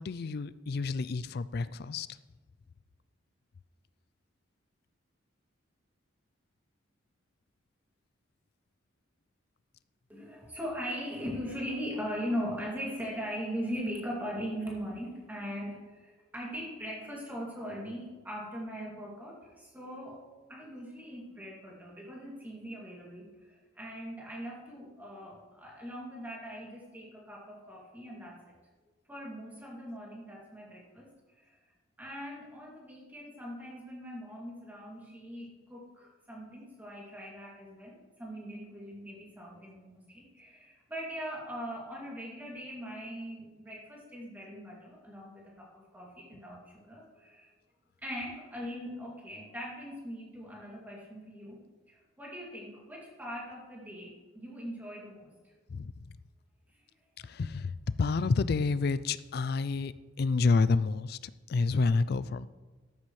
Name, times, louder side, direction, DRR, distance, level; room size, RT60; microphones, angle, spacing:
voice 1, 0.0-2.1 55.7-56.1 57.2-62.5, left 4 dB, 50° left, 16 dB, 0.4 m, -29 dB
voice 2, 10.1-28.5 29.1-31.6 32.0-47.5 48.0-51.6 51.9-55.6 56.7-56.8, equal, 10° right, -4 dB, 2.5 m, -40 dB
13.0 x 13.0 x 3.2 m, 1.3 s
head